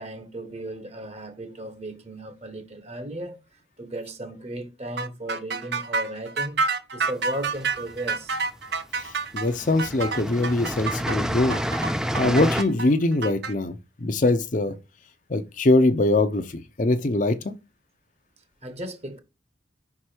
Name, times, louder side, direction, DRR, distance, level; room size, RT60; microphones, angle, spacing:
voice 1, 0.0-3.4 3.8-6.6 6.9-8.3 18.6-19.2, right 1 dB, 35° right, 1.1 m, -35 dB
sound 1, 5.0-13.5, right 4 dB, 60° right, 0.7 m, -28 dB
sound 2, 7.3-8.1 9.0-9.1 9.4-12.6, equal, 5° right, 0.3 m, -29 dB
voice 2, 9.3-11.6 12.2-13.7 14.0-14.7 15.3-17.5, left 2 dB, 40° left, 0.6 m, -22 dB
5.4 x 4.8 x 4.4 m
head